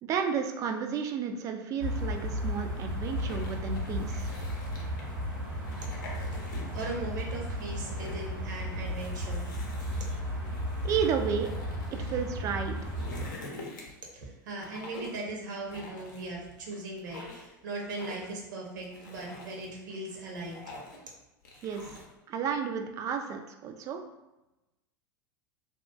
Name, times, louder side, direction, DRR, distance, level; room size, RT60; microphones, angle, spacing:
voice 1, 0.0-4.3 10.8-11.5 11.9-12.8 21.6-21.8 22.3-24.0, right 7 dB, 30° right, 5 dB, 0.3 m, -32 dB
sound 1, 1.8-13.3, equal, 85° right, 1.4 m, -34 dB
sound 2, 3.0-5.1 5.6-6.9 7.3-8.3 8.9-12.1 12.6-14.1 14.6-15.2 15.7-16.6 17.0-17.5 18.0-18.4 18.8-19.7 20.1-21.1 21.4-22.1, left 2 dB, 65° left, 0.6 m, -46 dB
voice 2, 6.3-9.5 10.1-10.2 14.1-20.7, right 2 dB, 60° right, -1 dB, 0.8 m, -39 dB
2.9 x 2.3 x 2.3 m, 0.98 s
figure-of-eight pair, 85°, 11 cm